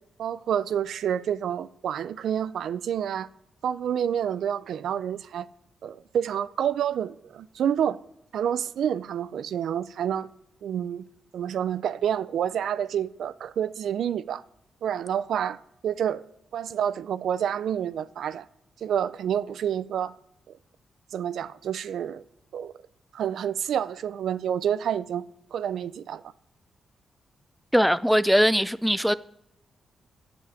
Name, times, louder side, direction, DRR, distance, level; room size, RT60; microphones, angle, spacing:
voice 1, 0.2-3.3 3.6-5.5 5.8-8.0 8.3-10.3 10.6-11.0 11.3-14.4 14.8-16.2 16.5-18.5 18.8-20.1 21.1-22.2 22.5-22.7 23.1-26.2, right 9 dB, 75° right, 0.4 m, -28 dB
voice 2, 27.7-29.1, equal, ahead, 0.3 m, -21 dB
8.1 x 6.9 x 4.9 m
cardioid pair, 70°, 0 cm